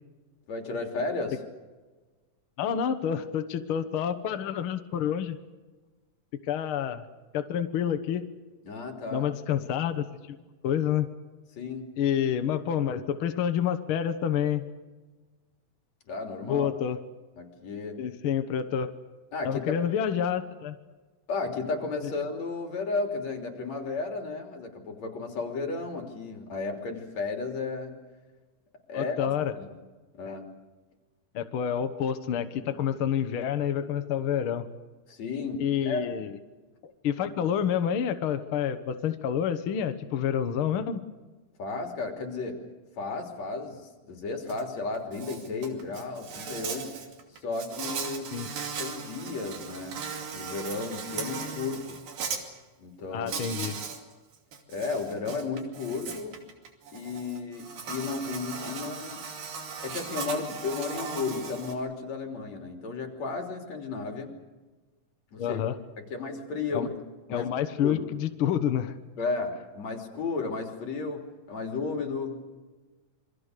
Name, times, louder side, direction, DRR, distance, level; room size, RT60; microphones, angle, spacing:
voice 1, 0.5-1.4 8.7-9.3 11.6-11.9 16.1-16.7 17.4-18.0 19.3-19.8 21.3-28.0 28.9-29.7 30.1-30.5 35.1-36.1 41.6-42.6 43.0-43.8 44.1-46.9 47.4-48.3 48.8-50.0 50.3-52.0 52.8-53.5 54.7-56.4 56.9-59.2 59.8-64.3 65.3-65.6 66.0-66.9 67.3-67.5 67.8-68.0 69.2-72.5, left 4 dB, 50° left, 3 dB, 4.4 m, -33 dB
voice 2, 2.6-5.4 6.4-7.1 7.3-8.2 9.1-10.4 10.6-11.1 12.0-14.6 16.4-17.0 18.0-18.9 19.4-20.8 28.9-29.5 30.2-30.4 31.3-34.7 35.6-36.4 37.0-41.0 48.3-48.5 53.1-53.8 65.4-65.8 66.7-66.9 67.3-68.9, left 9 dB, 65° left, 9 dB, 1.3 m, -28 dB
Insect, 44.5-44.6 44.9-52.4 53.3-54.0 54.3-61.7, right 5 dB, 85° right, 4.5 m, -37 dB
27.5 x 23.5 x 6.7 m, 1.3 s
omnidirectional pair, 4.1 m